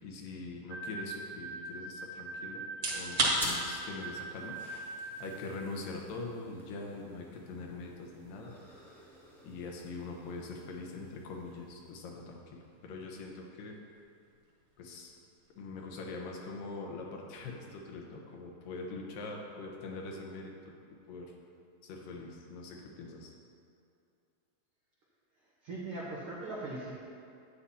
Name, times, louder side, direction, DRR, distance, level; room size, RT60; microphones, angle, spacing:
voice 1, 0.0-2.6 2.9-8.5 9.4-13.8 14.8-15.1 15.6-20.7 21.1-21.3 21.8-23.3, left 3 dB, 75° left, 0 dB, 2.6 m, -43 dB
sound 1, 0.7-5.6, right 3 dB, 75° right, 1.4 m, -43 dB
sound 2, 2.7-17.5, right 2 dB, 45° right, 1.6 m, -41 dB
sound 3, 3.3-12.3, equal, 5° left, 0.3 m, -49 dB
voice 2, 25.6-26.9, right 2 dB, 90° right, -6 dB, 1.2 m, -39 dB
11.5 x 9.7 x 2.8 m, 2.5 s
omnidirectional pair, 4.1 m